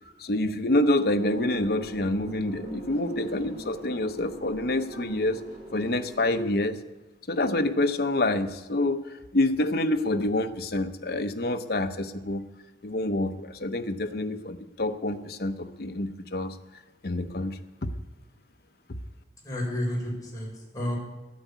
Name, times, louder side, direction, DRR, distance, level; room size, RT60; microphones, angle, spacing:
voice 1, 0.2-5.4 5.7-6.8 7.3-9.0 9.3-12.4 12.8-16.5 17.0-17.9, left 1 dB, 60° left, 8 dB, 0.8 m, -27 dB
sound 1, 1.1-6.4, right 1 dB, 50° right, 5.2 m, -43 dB
voice 2, 19.4-21.0, left 1 dB, 20° left, -4 dB, 4.5 m, -31 dB
11.5 x 9.7 x 8.2 m, 1.1 s
head